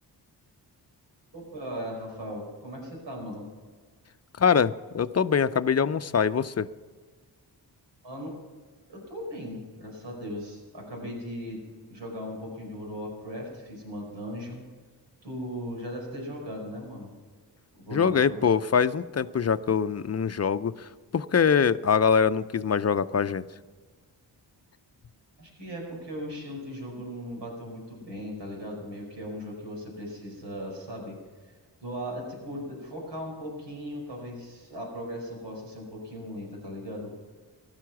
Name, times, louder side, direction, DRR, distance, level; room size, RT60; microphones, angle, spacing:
voice 1, 1.3-3.5 8.0-8.3 8.9-11.6 11.9-14.6 15.2-17.1 17.8-18.4 25.4-31.2 31.5-31.6 31.8-37.1, equal, 90° right, 0 dB, 5.0 m, -38 dB
voice 2, 4.4-6.7 17.9-23.5, left 6 dB, 40° left, 13 dB, 0.5 m, -24 dB
16.0 x 12.0 x 5.9 m, 1.5 s
cardioid pair, 65°, 41 cm